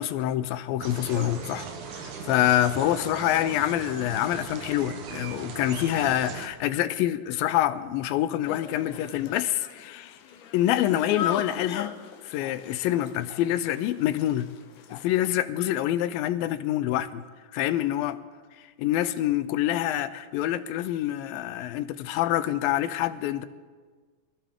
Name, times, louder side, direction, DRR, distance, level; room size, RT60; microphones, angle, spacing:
voice 1, 0.0-1.7 1.9-10.1 10.5-11.9 12.2-14.5 14.9-17.2 17.5-18.2 18.8-23.5, left 13 dB, 85° left, 2.4 m, -26 dB
sound 1, 0.8-6.5, right 6 dB, 65° right, 2.3 m, -38 dB
sound 2, 8.4-15.0, left 8 dB, 70° left, 2.1 m, -38 dB
23.5 x 15.0 x 3.7 m
omnidirectional pair, 4.1 m